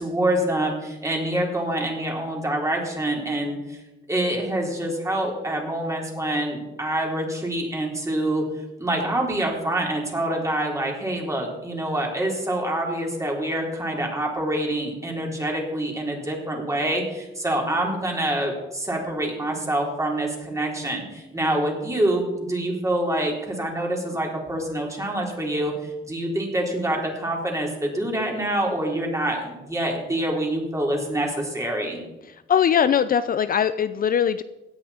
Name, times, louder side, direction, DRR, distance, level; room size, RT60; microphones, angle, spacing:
voice 1, 0.0-3.8 4.1-8.4 8.8-32.0, right 1 dB, 15° right, 0 dB, 3.8 m, -26 dB
voice 2, 32.5-34.4, left 8 dB, 45° left, 12 dB, 0.5 m, -20 dB
17.0 x 9.9 x 4.3 m, 1.0 s
cardioid pair, 90°, 20 cm